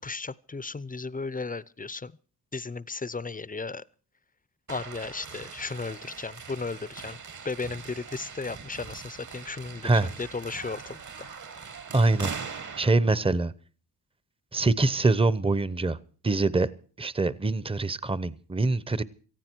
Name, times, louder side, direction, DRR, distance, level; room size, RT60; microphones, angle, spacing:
voice 1, 0.0-2.2 2.5-3.8 4.7-7.2 7.4-11.3, left 4 dB, 20° left, 19 dB, 0.6 m, -35 dB
sound 1, 4.7-12.9, right 5 dB, 45° right, 1.5 m, -41 dB
voice 2, 11.9-12.5 12.8-13.5 14.5-16.0 16.2-16.7 17.0-19.0, right 3 dB, 15° right, 18 dB, 0.8 m, -24 dB
18.0 x 15.0 x 4.5 m, 0.40 s
cardioid pair, 100°, 40 cm